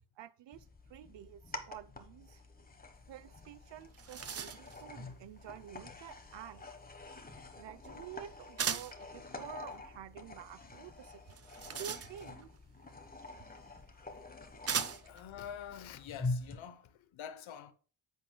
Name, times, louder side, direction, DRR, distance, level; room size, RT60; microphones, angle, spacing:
voice 1, 0.2-2.4 3.1-6.6 7.5-11.4 11.6-12.5, right 11 dB, 65° right, 0.8 m, -50 dB
sound 1, 0.5-16.6, left 3 dB, 20° left, 1.2 m, -46 dB
sound 2, 3.4-3.5 3.8-4.8 8.6-9.0 11.3-12.5 13.6-13.7 14.7-15.2, right 7 dB, 30° right, 0.6 m, -38 dB
voice 2, 15.0-17.7, left 8 dB, 80° left, 1.0 m, -46 dB
10.5 x 8.2 x 2.2 m
wide cardioid pair, 140°, 47 cm